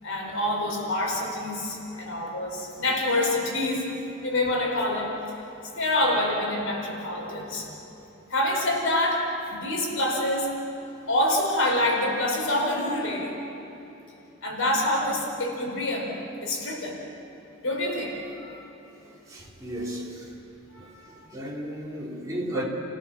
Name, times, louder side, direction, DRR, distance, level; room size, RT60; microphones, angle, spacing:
voice 1, 0.0-3.9 4.2-5.1 5.7-7.7 8.3-10.5 11.1-13.4 14.4-16.1 16.4-17.0 17.6-18.6 20.7-21.2, left 1 dB, 80° left, -1 dB, 4.9 m, -26 dB
voice 2, 19.0-20.3 20.8-20.9 21.3-22.6, right 1 dB, 15° right, -5 dB, 3.7 m, -34 dB
30.0 x 16.5 x 7.4 m, 2.9 s
head